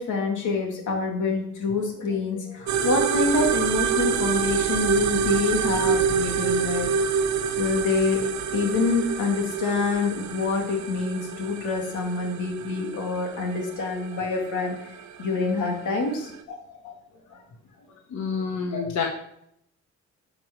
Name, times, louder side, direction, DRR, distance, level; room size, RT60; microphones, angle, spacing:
voice 1, 0.0-6.9 7.6-8.2 8.5-14.8 15.2-16.9 18.7-18.8, left 4 dB, 80° left, 2 dB, 2.9 m, -26 dB
sound 1, 2.7-16.4, right 6 dB, 65° right, 1.0 m, -27 dB
voice 2, 18.1-19.0, left 5 dB, 65° left, 1 dB, 1.4 m, -28 dB
11.0 x 5.8 x 6.3 m, 0.74 s
cardioid pair, 90°, 30 cm